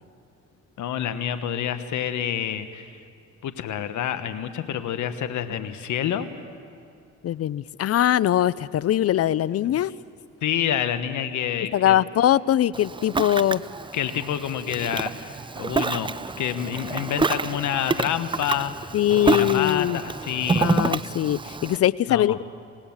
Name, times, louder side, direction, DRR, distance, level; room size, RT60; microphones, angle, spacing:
voice 1, 0.8-2.9 3.4-6.3 9.6-9.8 10.4-12.0 13.9-16.1 16.4-18.7 19.2-20.7 22.1-22.4, left 9 dB, 75° left, 10 dB, 1.4 m, -28 dB
voice 2, 7.2-9.9 11.7-13.6 18.9-20.0 20.6-22.4, left 12 dB, 55° left, 20 dB, 0.5 m, -22 dB
Ocean, 12.7-21.8, right 4 dB, 15° right, 0.5 m, -28 dB
27.0 x 18.0 x 7.3 m, 2.4 s
cardioid pair, 90°, 30 cm